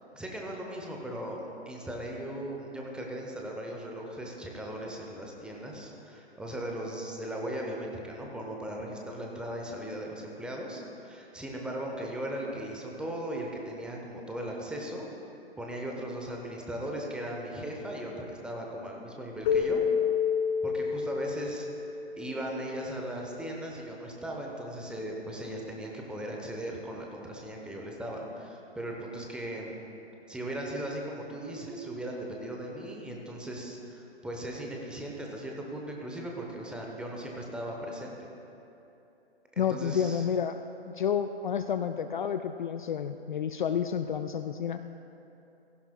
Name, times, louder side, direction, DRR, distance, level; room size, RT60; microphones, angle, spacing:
voice 1, 0.1-15.1 15.6-19.8 20.6-21.7 22.2-29.8 30.3-38.1 39.6-40.2, right 1 dB, 5° right, -1 dB, 0.8 m, -38 dB
Keyboard (musical), 19.5-22.7, left 6 dB, 30° left, 1.6 m, -29 dB
voice 2, 39.6-40.6 41.0-44.8, left 8 dB, 50° left, 8 dB, 0.4 m, -30 dB
16.5 x 15.0 x 2.3 m, 2.9 s
figure-of-eight pair, 125°, 32 cm